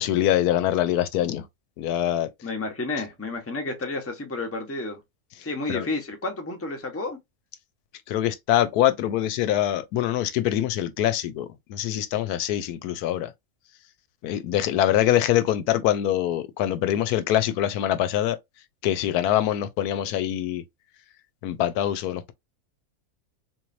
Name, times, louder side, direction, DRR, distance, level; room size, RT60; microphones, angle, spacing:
voice 1, 0.0-1.5 1.8-2.3 5.7-5.9 8.1-13.3 14.2-18.4 18.8-20.6 21.4-22.3, left 12 dB, 80° left, 1.1 m, -24 dB
voice 2, 2.4-5.0 5.4-7.2, left 2 dB, 10° left, 0.7 m, -31 dB
3.9 x 3.1 x 2.6 m
omnidirectional pair, 1.6 m